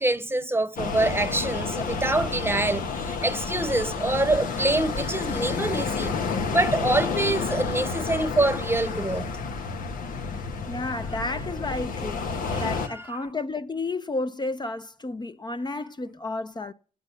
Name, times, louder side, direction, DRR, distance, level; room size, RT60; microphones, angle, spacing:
voice 1, 0.0-6.1 6.5-9.3 12.5-13.0, right 2 dB, 15° right, 0.9 m, -25 dB
sound 1, 0.8-12.9, left 4 dB, 80° left, 1.1 m, -30 dB
voice 2, 10.7-16.7, left 2 dB, 30° left, 0.7 m, -32 dB
8.7 x 8.2 x 8.3 m
supercardioid pair, 45°, 14 cm